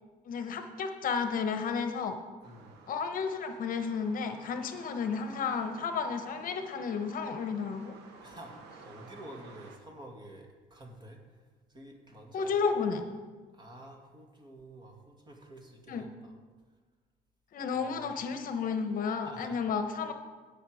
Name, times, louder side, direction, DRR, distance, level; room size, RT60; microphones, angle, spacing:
voice 1, 0.3-2.2 2.9-7.9 12.3-13.0 15.9-16.1 17.5-20.1, left 5 dB, 55° left, 8 dB, 0.9 m, -32 dB
voice 2, 2.4-2.8 8.2-11.2 11.7-12.6 13.5-16.4 17.7-18.4 19.2-19.6, right 1 dB, 25° right, 2 dB, 2.0 m, -50 dB
sound 1, 2.4-9.8, right 4 dB, 85° right, 1.4 m, -53 dB
16.5 x 5.7 x 4.9 m, 1.4 s
cardioid pair, 110°, 17 cm